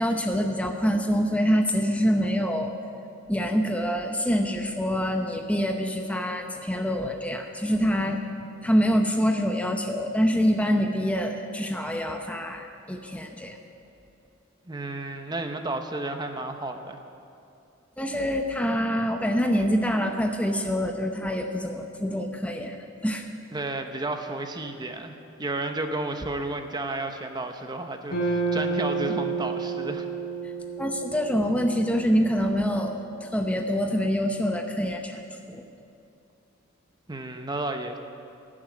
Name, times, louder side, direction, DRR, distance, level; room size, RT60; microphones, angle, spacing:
voice 1, 0.0-2.7 3.3-8.2 8.6-13.6 18.0-22.8 23.0-23.3 30.8-35.2 35.5-35.6, equal, 5° left, 4 dB, 0.7 m, -25 dB
voice 2, 14.7-17.0 23.5-30.1 37.1-38.0, right 2 dB, 20° right, 6 dB, 0.9 m, -32 dB
sound 1, 28.1-32.4, right 4 dB, 50° left, 4.0 m, -30 dB
17.0 x 7.4 x 9.6 m, 2.6 s
head